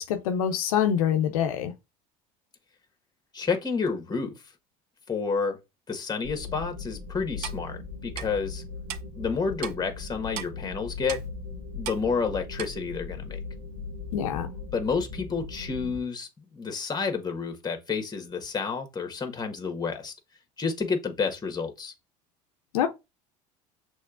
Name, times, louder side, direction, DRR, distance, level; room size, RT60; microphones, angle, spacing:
voice 1, 0.0-1.7 14.1-14.5 22.7-22.9, left 9 dB, 85° left, 0.6 m, -25 dB
voice 2, 3.3-4.3 5.1-5.6 5.9-8.6 9.2-11.2 11.7-13.4 14.7-20.1 20.6-21.9, left 5 dB, 20° left, 1.4 m, -30 dB
sound 1, 6.2-16.0, left 4 dB, 85° right, 1.3 m, -39 dB
Clock, 7.4-7.6 8.2-8.3 8.9-9.0 9.6-9.8 10.4-10.5 11.1-11.3 11.9-12.0 12.6-12.7, right 12 dB, 65° right, 0.5 m, -35 dB
6.2 x 3.3 x 2.4 m
hypercardioid pair, 80°, 18 cm